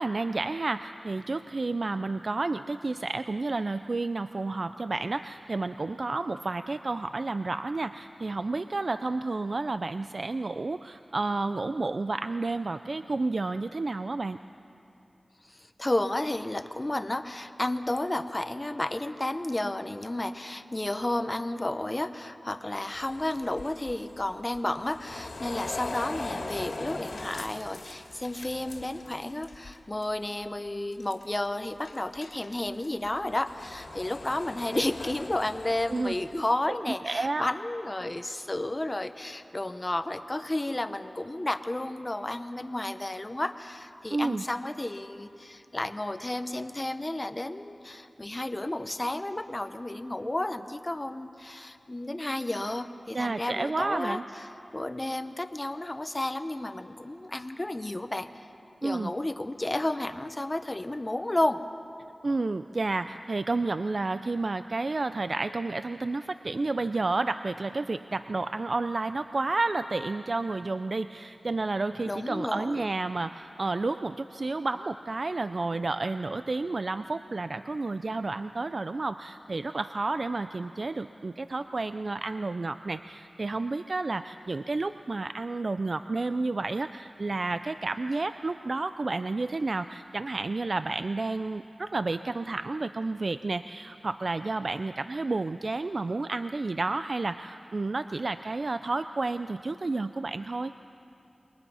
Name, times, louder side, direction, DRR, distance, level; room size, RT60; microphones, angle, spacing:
voice 1, 0.0-14.4 35.9-36.1 37.0-37.5 44.1-44.4 53.1-54.2 58.8-59.1 62.2-100.7, right 3 dB, 50° right, 10 dB, 0.4 m, -31 dB
voice 2, 15.5-54.5 54.7-58.3 58.8-61.6 72.1-72.8, left 1 dB, 25° left, 10 dB, 0.9 m, -32 dB
sound 1, 22.9-29.8 30.0-30.4 30.9-31.5 31.8-36.4, left 2 dB, 80° left, 2.3 m, -41 dB
28.0 x 22.5 x 5.6 m, 2.8 s
wide cardioid pair, 90°, 0 cm